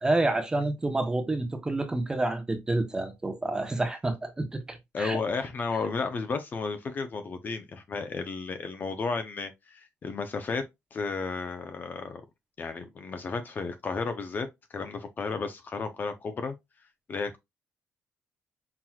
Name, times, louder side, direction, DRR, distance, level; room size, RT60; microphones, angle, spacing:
voice 1, 0.0-5.2, right 2 dB, 15° right, 1.0 m, -28 dB
voice 2, 4.9-10.6 10.9-12.2 12.6-16.5 17.1-17.4, left 4 dB, 35° left, 0.7 m, -33 dB
5.9 x 3.0 x 2.3 m
cardioid pair, 125°, 5 cm